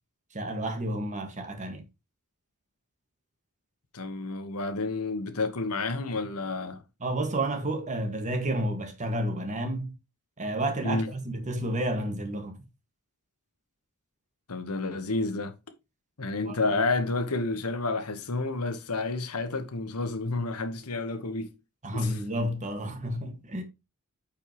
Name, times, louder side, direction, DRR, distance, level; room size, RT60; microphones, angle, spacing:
voice 1, 0.3-1.8 7.0-9.9 10.4-12.6 16.4-16.6 21.8-23.6, right 1 dB, 35° right, 1.7 m, -30 dB
voice 2, 3.9-6.8 10.8-11.1 14.5-15.5 16.2-21.5 21.9-22.2, left 3 dB, 85° left, 1.2 m, -30 dB
8.6 x 5.4 x 3.0 m
head